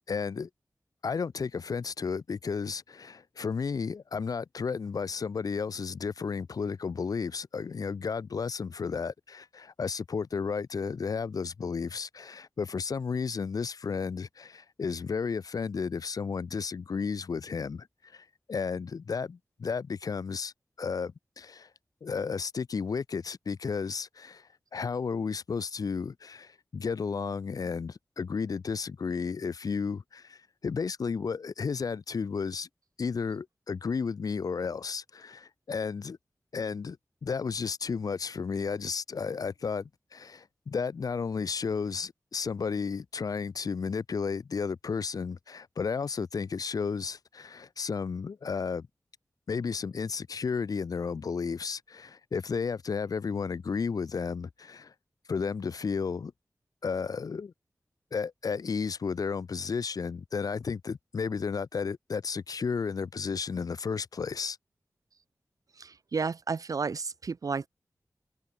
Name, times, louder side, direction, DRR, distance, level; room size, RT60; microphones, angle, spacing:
voice 1, 0.1-0.5 1.0-21.7 22.0-32.7 33.0-36.2 36.5-37.0 37.2-48.9 49.5-54.9 55.3-56.3 56.8-57.5 58.1-64.6, left 5 dB, 85° left, 0.9 m, -33 dB
voice 2, 65.8-67.7, right 5 dB, 70° right, 0.9 m, -32 dB
open air
wide cardioid pair, 100°, 6 cm